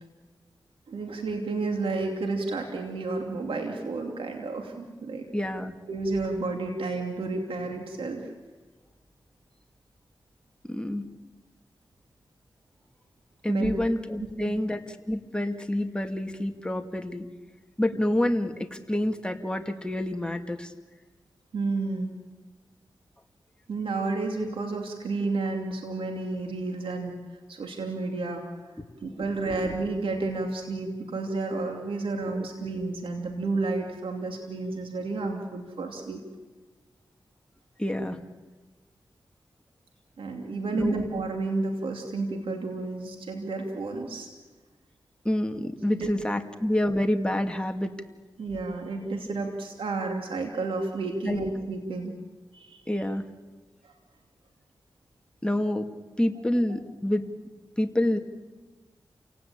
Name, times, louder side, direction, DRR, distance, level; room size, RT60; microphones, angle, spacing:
voice 1, 0.9-5.2 5.9-8.3 13.5-13.8 14.4-14.5 17.9-18.0 21.5-22.1 23.7-27.1 27.5-28.4 29.0-36.2 40.2-44.3 45.9-46.1 48.4-52.1 52.5-52.8 53.8-53.9, right 3 dB, 90° right, 3 dB, 2.9 m, -31 dB
voice 2, 5.3-5.7 10.7-11.1 13.4-17.3 17.8-20.7 29.5-29.6 32.3-32.4 37.8-38.2 40.7-40.9 45.2-47.9 51.2-51.4 52.9-53.2 55.4-55.9 56.2-57.2 57.8-58.2, left 1 dB, 10° left, 5 dB, 2.4 m, -28 dB
28.5 x 18.0 x 8.9 m, 1.3 s
cardioid pair, 50°, 9 cm